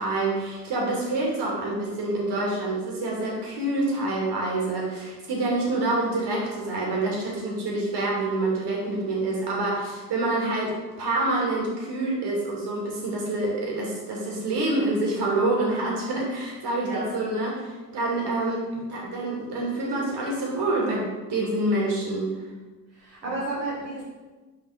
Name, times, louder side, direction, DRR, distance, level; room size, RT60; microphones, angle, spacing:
voice 1, 0.0-22.3, right 2 dB, 55° right, -2 dB, 2.7 m, -27 dB
voice 2, 22.9-24.0, right 2 dB, 90° right, -8 dB, 1.6 m, -32 dB
7.3 x 5.5 x 5.1 m, 1.3 s
hypercardioid pair, 50°, 47 cm